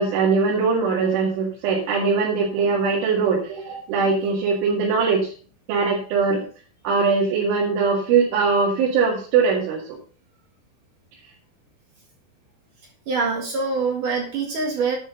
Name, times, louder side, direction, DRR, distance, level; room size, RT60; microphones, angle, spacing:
voice 1, 0.0-5.3 5.7-6.4 6.8-10.0, right 5 dB, 75° right, -3 dB, 4.5 m, -21 dB
voice 2, 13.1-15.0, right 4 dB, 60° right, 1 dB, 2.5 m, -24 dB
11.0 x 9.0 x 3.9 m, 0.40 s
omnidirectional pair, 5.7 m